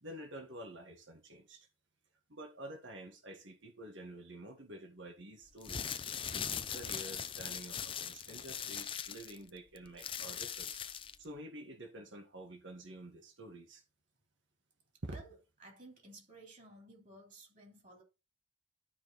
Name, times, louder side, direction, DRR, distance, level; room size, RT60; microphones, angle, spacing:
voice 1, 0.0-1.7 2.3-6.0 6.3-10.8 11.2-13.8 15.0-15.2, right 1 dB, 75° right, 1.6 m, -49 dB
sound 1, 5.5-11.2, left 8 dB, 25° left, 0.6 m, -40 dB
voice 2, 15.1-18.0, right 2 dB, 40° right, 3.4 m, -55 dB
12.0 x 5.2 x 4.1 m
head